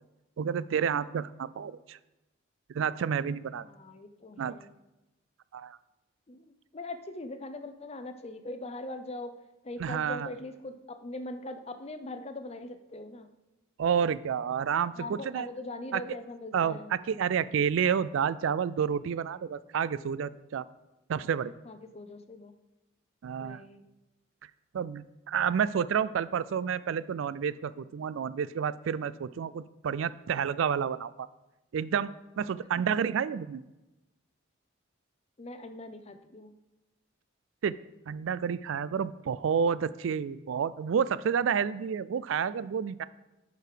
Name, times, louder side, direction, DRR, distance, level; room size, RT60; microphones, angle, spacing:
voice 1, 0.4-2.0 2.7-3.6 4.4-4.6 5.5-5.8 9.8-10.3 13.8-15.5 15.9-16.0 16.5-20.6 21.1-21.5 23.2-23.6 24.7-31.3 31.7-32.1 32.4-33.6 37.6-37.7 38.1-43.0, right 7 dB, 75° right, 17 dB, 0.3 m, -30 dB
voice 2, 3.6-4.7 6.3-9.3 9.6-13.3 15.0-16.9 21.6-22.5 23.4-23.8 35.4-36.5, left 2 dB, 30° left, 8 dB, 0.6 m, -41 dB
10.5 x 4.8 x 5.0 m, 0.99 s
head